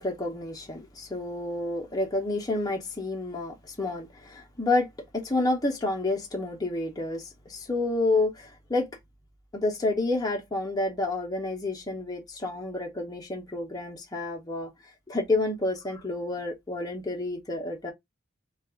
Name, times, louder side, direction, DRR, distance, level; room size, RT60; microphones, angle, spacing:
voice 1, 0.0-4.9 5.1-8.9 9.5-14.7 15.1-17.9, left 2 dB, 15° left, 0.6 m, -29 dB
2.3 x 2.3 x 3.4 m
head